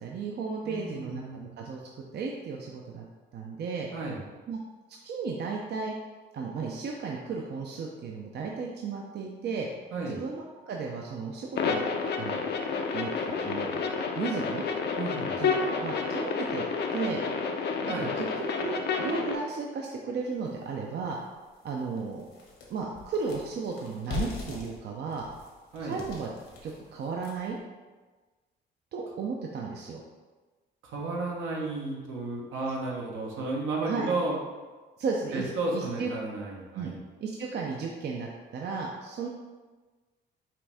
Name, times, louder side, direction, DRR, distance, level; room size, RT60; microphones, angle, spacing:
voice 1, 0.0-3.1 3.3-3.9 4.5-4.6 5.0-6.0 6.3-9.7 10.1-11.8 12.2-12.4 12.9-14.6 15.4-16.6 16.9-17.2 17.8-18.3 18.6-21.2 21.6-22.3 22.7-25.2 25.9-26.3 26.6-27.6 28.9-30.0 33.9-34.1 35.0-35.4 35.7-36.1 36.7-36.9 37.2-39.3, right 5 dB, 60° right, -1 dB, 0.5 m, -34 dB
voice 2, 0.6-1.5 3.9-4.2 9.9-10.2 15.0-15.4 17.9-18.1 25.7-26.0 30.8-34.4 35.3-37.0, right 3 dB, 80° right, -2 dB, 1.1 m, -33 dB
sound 1, 11.5-19.3, left 5 dB, 60° left, 0.6 m, -30 dB
sound 2, 20.5-20.6 21.1-21.2 21.5-27.6, left 5 dB, 75° left, 1.3 m, -41 dB
5.7 x 2.6 x 3.4 m, 1.3 s
cardioid pair, 90°, 20 cm